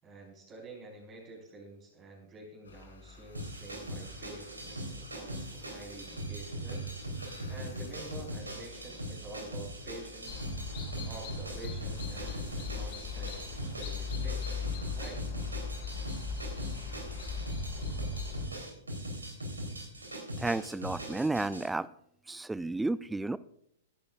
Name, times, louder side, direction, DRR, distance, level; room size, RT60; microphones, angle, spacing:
voice 1, 0.0-6.9 7.5-10.5 11.0-14.6 14.9-15.3, right 2 dB, 25° right, -2 dB, 4.5 m, -48 dB
sound 1, 2.6-17.5, left 5 dB, 75° left, 3.5 m, -54 dB
sound 2, 3.3-21.7, right 1 dB, 85° right, 3.6 m, -40 dB
sound 3, 10.3-18.5, left 6 dB, 40° left, 5.2 m, -38 dB
voice 2, 20.4-21.9 22.3-23.4, right 2 dB, 5° right, 19 dB, 0.4 m, -32 dB
20.0 x 10.5 x 2.4 m, 0.71 s
figure-of-eight pair, 105°, 0 cm